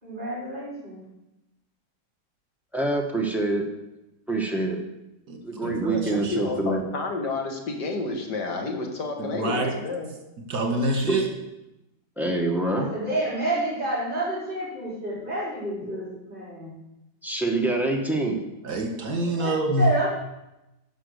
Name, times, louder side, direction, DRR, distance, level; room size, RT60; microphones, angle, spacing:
voice 1, 0.0-1.0 12.7-16.7 19.3-20.1, right 1 dB, 30° right, -5 dB, 4.8 m, -29 dB
voice 2, 2.7-3.6 4.3-4.8 5.4-6.8 11.1-11.2 12.2-12.9 17.2-18.4, right 2 dB, ahead, 0 dB, 1.3 m, -25 dB
voice 3, 5.6-6.5 9.2-9.7 10.5-11.2 18.6-19.9, right 1 dB, 70° right, 2 dB, 2.5 m, -26 dB
voice 4, 6.3-10.1, left 3 dB, 80° left, 2 dB, 2.1 m, -30 dB
10.5 x 6.0 x 6.7 m, 0.93 s
omnidirectional pair, 1.8 m